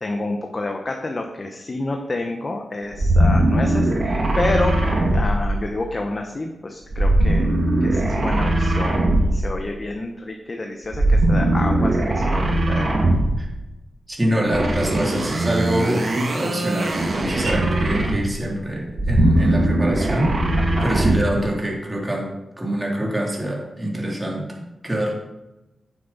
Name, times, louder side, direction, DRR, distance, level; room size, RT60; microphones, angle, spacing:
voice 1, 0.0-4.8 5.1-7.5 7.8-12.9 20.7-20.9, left 2 dB, 40° left, 3 dB, 1.1 m, -29 dB
sound 1, 2.9-6.0 6.9-9.6 10.9-13.5 14.4-18.4 18.9-21.4, right 1 dB, 55° right, 2.1 m, -20 dB
voice 2, 14.1-25.1, right 1 dB, 20° right, -2 dB, 3.1 m, -25 dB
9.1 x 7.4 x 4.2 m, 1.0 s
cardioid pair, 55°, 0 cm